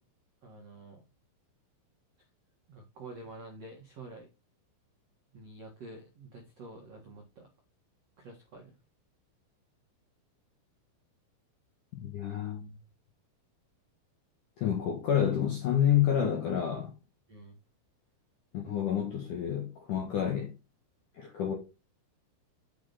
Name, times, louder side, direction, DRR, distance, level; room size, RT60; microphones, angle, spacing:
voice 1, 0.4-1.0 2.7-4.3 5.3-7.5 8.2-8.7 17.3-17.6, right 2 dB, 80° right, 1.4 m, -48 dB
voice 2, 12.0-12.7 14.6-16.9 18.5-20.5 21.1-21.5, left 9 dB, 70° left, 2.0 m, -29 dB
8.7 x 6.3 x 4.1 m
omnidirectional pair, 6.0 m